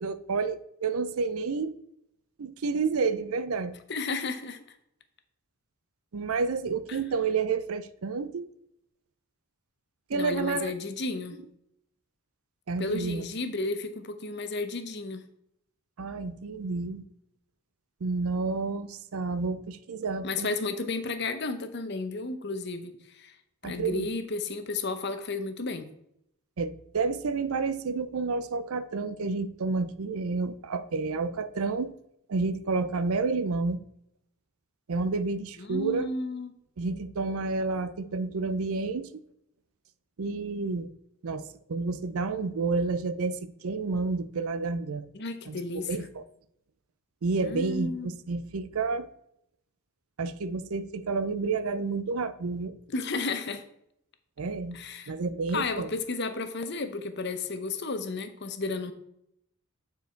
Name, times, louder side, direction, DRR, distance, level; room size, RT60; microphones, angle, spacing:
voice 1, 0.0-1.7 2.4-3.7 6.1-8.5 10.1-10.7 12.7-13.3 16.0-17.0 18.0-20.5 23.6-24.1 26.6-31.9 32.3-33.8 34.9-36.1 36.8-39.1 40.2-40.9 41.2-45.1 45.5-46.2 47.2-49.1 50.2-52.7 54.4-54.8 55.1-55.9, right 4 dB, 75° right, 0.5 m, -30 dB
voice 2, 3.9-4.6 6.9-7.0 10.1-11.4 12.8-15.2 20.2-23.4 23.6-25.9 35.6-36.5 45.1-46.1 47.4-48.1 52.9-53.6 54.7-55.1 55.5-58.9, left 3 dB, 50° left, 0.8 m, -33 dB
9.4 x 4.6 x 4.5 m
head